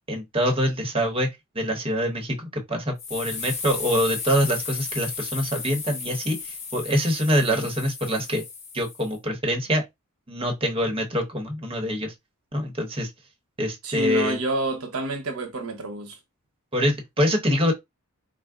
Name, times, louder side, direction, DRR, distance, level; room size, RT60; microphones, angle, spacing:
voice 1, 0.1-1.3 1.5-8.4 8.7-9.8 10.3-12.1 12.5-13.1 13.6-14.4 16.7-17.7, equal, 25° right, 0.9 m, -25 dB
sound 1, 3.0-9.2, left 5 dB, 30° left, 0.8 m, -34 dB
voice 2, 13.8-16.2, right 2 dB, 85° right, 0.9 m, -28 dB
3.5 x 2.0 x 3.6 m
head